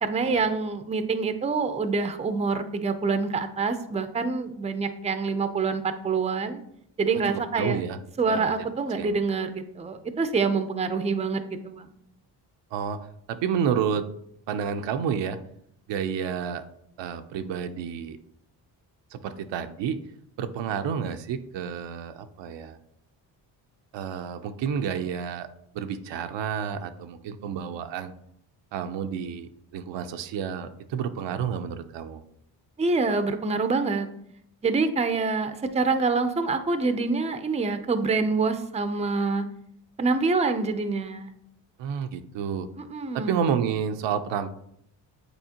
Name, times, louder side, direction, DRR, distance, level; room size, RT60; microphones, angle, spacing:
voice 1, 0.0-6.6 7.0-7.8 8.2-11.9 32.8-34.1 34.6-39.5 40.0-41.3 42.8-43.5, right 4 dB, 15° right, 9 dB, 0.5 m, -26 dB
voice 2, 7.6-8.0 8.3-8.5 9.0-9.2 12.7-13.0 13.3-14.1 14.5-15.4 15.9-16.6 17.0-18.2 19.1-20.0 20.4-22.8 23.9-25.5 25.7-28.1 28.7-32.2 41.8-42.7 43.1-44.5, right 7 dB, 75° right, 8 dB, 0.7 m, -30 dB
8.1 x 4.2 x 2.9 m, 0.73 s
cardioid pair, 85°, 44 cm